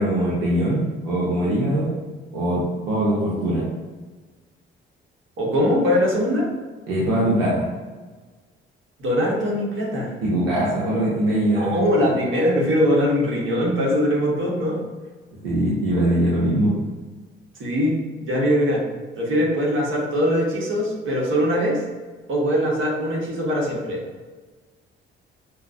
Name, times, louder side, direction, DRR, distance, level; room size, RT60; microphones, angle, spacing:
voice 1, 0.0-1.9 2.3-3.6 6.9-7.6 10.2-11.8 15.4-16.7, right 1 dB, 75° right, -7 dB, 0.9 m, -21 dB
voice 2, 5.4-6.5 9.0-10.1 11.6-14.8 17.6-18.8 19.2-21.8 22.3-24.0, equal, 45° right, -3 dB, 1.3 m, -21 dB
5.7 x 2.2 x 2.6 m, 1.3 s
figure-of-eight pair, 45°, 29 cm